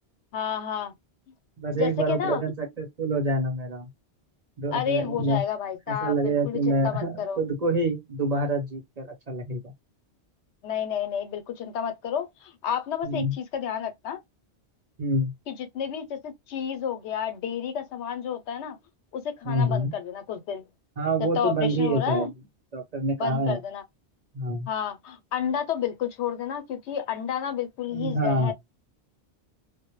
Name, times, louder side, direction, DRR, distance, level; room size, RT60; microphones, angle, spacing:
voice 1, 0.3-0.9 1.7-2.4 4.7-7.4 10.6-14.2 15.5-18.8 19.1-20.6 21.4-22.3 23.2-23.8 24.7-28.5, left 8 dB, 85° left, 0.9 m, -30 dB
voice 2, 1.6-3.9 4.6-5.4 5.9-9.7 13.0-13.3 15.0-15.3 19.4-19.9 21.0-22.3 22.7-23.6 24.3-24.7 27.9-28.5, right 1 dB, 40° right, 0.8 m, -27 dB
2.1 x 2.0 x 2.9 m
omnidirectional pair, 1.1 m